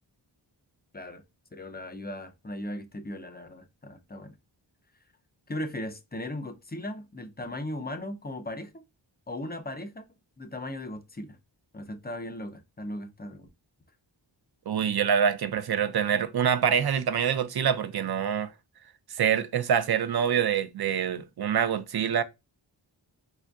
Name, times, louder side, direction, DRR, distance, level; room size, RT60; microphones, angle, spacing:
voice 1, 1.5-4.3 5.5-8.7 9.3-10.1 10.4-11.4 11.7-13.5, left 1 dB, 20° left, 0.4 m, -37 dB
voice 2, 14.7-18.5 19.1-22.2, right 8 dB, 55° right, 0.5 m, -25 dB
4.3 x 2.5 x 2.2 m
wide cardioid pair, 60°, 46 cm